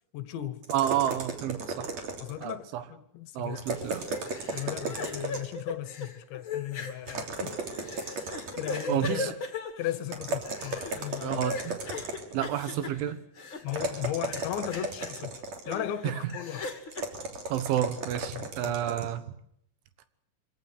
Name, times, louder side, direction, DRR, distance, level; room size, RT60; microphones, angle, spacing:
voice 1, 0.1-0.7 2.2-3.6 4.5-7.6 8.6-9.3 9.8-11.5 13.6-16.7 18.3-18.8, left 12 dB, 75° left, 13 dB, 3.1 m, -36 dB
sound 1, 0.6-2.5 3.5-5.6 7.1-9.0 10.1-12.5 13.7-15.9 16.9-19.1, right 3 dB, 40° right, 3.8 m, -35 dB
voice 2, 0.7-1.9 2.4-2.8 3.4-4.1 8.9-9.3 11.2-11.8 12.3-13.2 16.0-16.2 17.5-19.2, right 11 dB, 75° right, 12 dB, 3.6 m, -30 dB
sound 2, 3.5-14.0 14.3-15.2 15.6-17.0, left 3 dB, 30° left, 2.6 m, -39 dB
25.0 x 17.0 x 9.7 m, 0.73 s
omnidirectional pair, 5.8 m